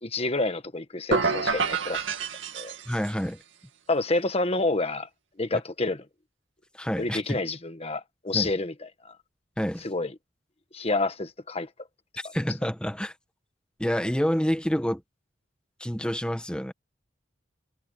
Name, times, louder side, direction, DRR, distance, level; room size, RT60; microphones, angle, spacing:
voice 1, 0.0-2.0 2.5-2.8 3.9-5.1 5.4-6.1 7.0-8.7 9.0-9.1 9.8-10.1 10.7-11.7 12.2-12.3, left 2 dB, 30° left, 1.5 m, -28 dB
sound 1, 1.1-3.2, right 4 dB, 80° right, 2.3 m, -28 dB
voice 2, 2.9-3.4 6.7-7.4 8.3-8.5 9.6-9.8 12.3-13.1 13.8-15.0 15.8-16.7, equal, 5° left, 1.6 m, -28 dB
head